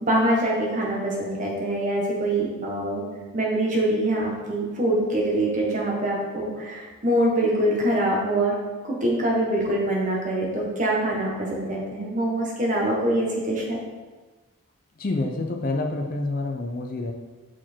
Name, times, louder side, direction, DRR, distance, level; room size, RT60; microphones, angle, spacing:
voice 1, 0.0-3.1 3.3-8.5 8.8-13.8, right 1 dB, 35° right, -3 dB, 1.3 m, -24 dB
voice 2, 15.0-17.1, left 2 dB, 40° left, 2 dB, 0.5 m, -27 dB
6.0 x 4.5 x 4.4 m, 1.3 s
head